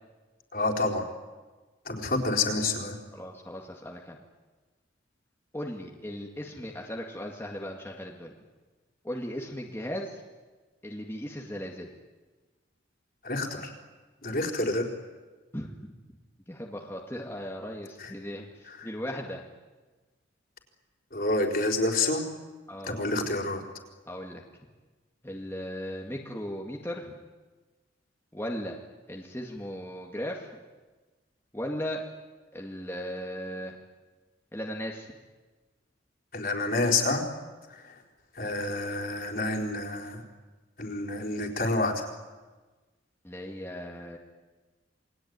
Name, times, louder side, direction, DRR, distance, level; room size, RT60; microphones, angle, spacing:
voice 1, 0.5-1.0 1.9-3.0 13.2-13.7 14.2-14.9 18.0-18.1 18.7-18.9 21.1-22.2 22.8-23.6 36.3-37.2 37.7-38.0 38.3-40.2 40.8-42.1, left 2 dB, 50° left, 2 dB, 4.3 m, -28 dB
voice 2, 3.1-4.2 5.5-8.4 9.0-10.2 10.8-11.9 15.5-15.9 16.5-19.4 22.7-23.0 24.1-24.4 25.2-27.2 28.3-28.8 29.1-30.6 31.5-32.0 32.5-33.8 34.5-35.1 43.2-44.2, equal, 15° left, -1 dB, 2.1 m, -37 dB
28.5 x 21.5 x 9.6 m, 1.3 s
head